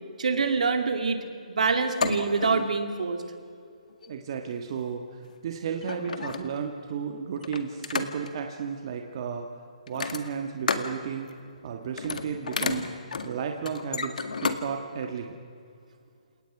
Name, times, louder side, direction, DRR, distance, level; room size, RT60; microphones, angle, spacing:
voice 1, 0.2-1.2 1.5-3.2, right 4 dB, 70° right, 6 dB, 2.7 m, -25 dB
sound 1, 1.8-2.8 3.9-4.2 5.3-5.4 5.8-6.7 7.4-8.4 9.9-11.0 11.3-11.6 11.9-14.6 15.0-15.1, left 4 dB, 75° left, 2.0 m, -32 dB
voice 2, 4.1-9.5 9.9-11.3 11.6-12.9 13.2-15.3, right 7 dB, 40° right, 4 dB, 1.6 m, -33 dB
29.0 x 18.5 x 6.0 m, 2.4 s
hypercardioid pair, 160°, 4 cm